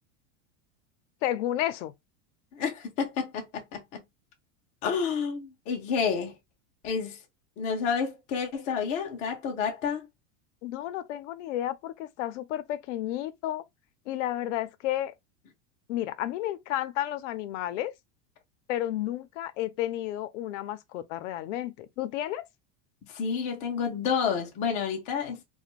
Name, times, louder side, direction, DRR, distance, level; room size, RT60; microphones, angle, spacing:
voice 1, 1.2-1.9 10.6-13.6 14.1-15.1 15.9-17.9 18.7-22.4, left 13 dB, 75° left, 0.5 m, -32 dB
voice 2, 2.5-4.0 4.8-6.3 6.8-7.2 7.6-10.1 23.1-25.4, left 6 dB, 20° left, 0.4 m, -30 dB
2.5 x 2.2 x 2.9 m
supercardioid pair, 165°, 37 cm